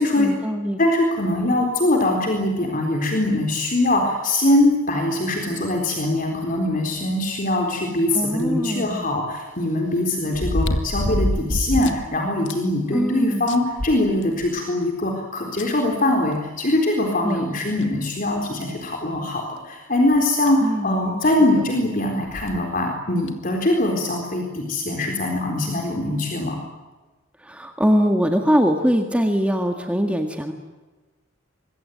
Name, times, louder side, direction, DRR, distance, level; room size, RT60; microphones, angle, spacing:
voice 1, 0.2-0.8 8.1-9.1 12.9-13.4 17.2-17.9 20.6-21.2 21.6-21.7 27.4-30.5, equal, 5° right, 4 dB, 1.8 m, -22 dB
voice 2, 0.8-26.6, left 1 dB, 40° left, 2 dB, 4.1 m, -22 dB
sound 1, 8.4-8.5 10.3-12.0 12.5-12.6 13.0-13.1 13.5-14.6 15.6-15.7 17.1-17.2 17.8-17.9 18.6-18.8 20.2-20.3 20.5-20.6 22.3-22.6 23.3-23.4, left 1 dB, 60° left, 2.2 m, -25 dB
25.5 x 22.0 x 9.3 m, 1.2 s
head